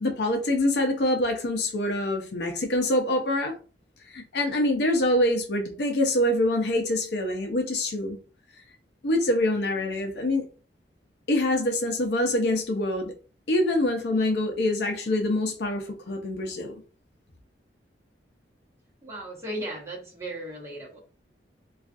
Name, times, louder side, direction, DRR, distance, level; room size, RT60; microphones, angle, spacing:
voice 1, 0.0-3.5 4.1-8.2 9.0-10.4 11.3-13.1 13.5-16.8, left 1 dB, 65° left, 0.6 m, -25 dB
voice 2, 19.0-21.0, right 1 dB, 15° right, 1.0 m, -36 dB
2.4 x 2.3 x 2.5 m
head